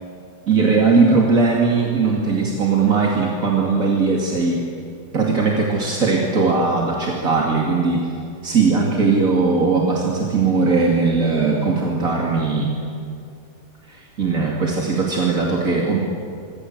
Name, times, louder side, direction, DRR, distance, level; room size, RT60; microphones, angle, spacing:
voice 1, 0.5-4.7 5.1-8.1 8.4-12.8 13.9-16.0, right 4 dB, 75° right, -2 dB, 3.1 m, -19 dB
26.5 x 24.5 x 8.1 m, 2.5 s
omnidirectional pair, 1.4 m